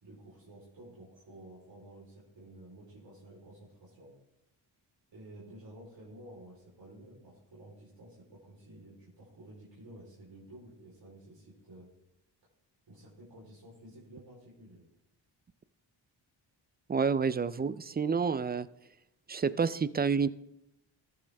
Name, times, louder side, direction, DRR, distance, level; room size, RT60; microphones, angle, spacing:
voice 1, 0.0-4.1 5.1-11.9 12.9-14.9, right 1 dB, 65° right, -7 dB, 3.9 m, -52 dB
voice 2, 16.9-18.7 19.3-20.3, right 5 dB, 20° right, 17 dB, 0.4 m, -29 dB
14.0 x 8.7 x 3.4 m, 0.86 s
cardioid pair, 60°, 47 cm